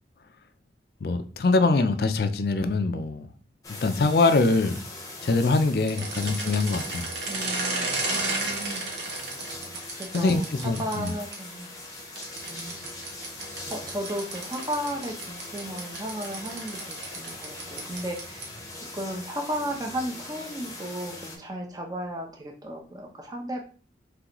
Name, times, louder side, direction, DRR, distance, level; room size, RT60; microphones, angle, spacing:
voice 1, 1.0-3.3 3.8-4.8 5.2-7.1 10.1-11.1, left 3 dB, 55° left, 0.4 m, -23 dB
sound 1, 3.6-21.4, left 2 dB, 20° left, 0.8 m, -41 dB
sound 2, 5.9-11.4 12.2-18.6, right 3 dB, 75° right, 1.0 m, -34 dB
voice 2, 7.3-8.8 10.0-11.7 12.5-12.8 13.7-18.5 18.7-23.7, equal, 20° right, 0.7 m, -34 dB
3.8 x 3.3 x 3.0 m
head